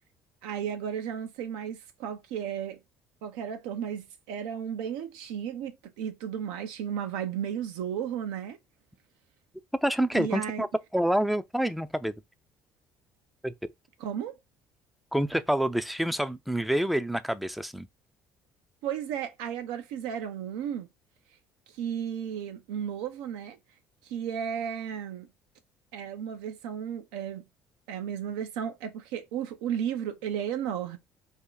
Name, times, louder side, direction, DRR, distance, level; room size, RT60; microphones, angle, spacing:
voice 1, 0.4-2.8 3.2-8.6 10.1-10.6 14.0-14.4 18.8-20.9 21.8-23.6 24.0-25.3 25.9-27.4 27.9-31.0, right 8 dB, 85° right, 0.7 m, -34 dB
voice 2, 9.8-10.7 10.9-12.1 13.4-13.5 15.1-17.9, right 1 dB, ahead, 0.4 m, -27 dB
2.8 x 2.4 x 3.8 m
supercardioid pair, 85°, 7 cm